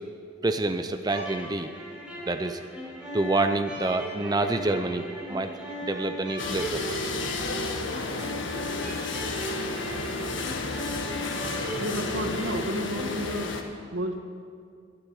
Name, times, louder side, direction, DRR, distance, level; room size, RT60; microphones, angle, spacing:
voice 1, 0.4-1.7 2.3-2.6 3.1-7.0 8.0-8.1 8.7-9.0 11.1-11.2, right 2 dB, 20° right, 7 dB, 0.6 m, -28 dB
sound 1, 1.0-13.3, equal, 5° right, 3.7 m, -37 dB
sound 2, 6.4-13.6, left 3 dB, 70° left, 1.5 m, -32 dB
voice 2, 11.8-13.5 13.9-14.2, equal, 85° right, 4 dB, 1.7 m, -31 dB
12.5 x 12.0 x 9.6 m, 2.2 s
head